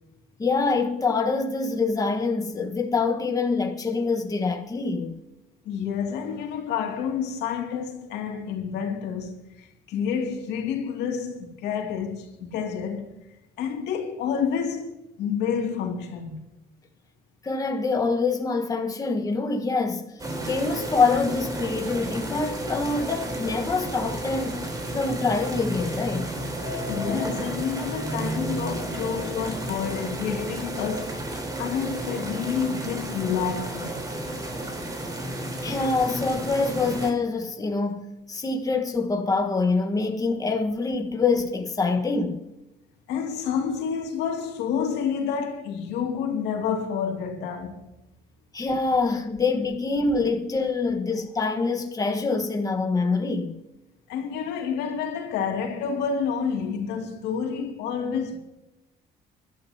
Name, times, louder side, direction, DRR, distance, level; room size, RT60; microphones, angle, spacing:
voice 1, 0.4-5.2 17.4-20.0 20.4-24.6 24.9-26.3 35.6-42.4 48.5-53.6, left 4 dB, 20° left, 1.4 m, -25 dB
voice 2, 5.6-13.1 13.6-16.4 26.9-31.3 31.6-34.0 43.1-47.8 54.1-58.4, left 7 dB, 85° left, 2.6 m, -29 dB
sound 1, 20.2-37.1, right 1 dB, 20° right, 3.8 m, -32 dB
23.5 x 12.0 x 2.9 m
cardioid pair, 110°, 17 cm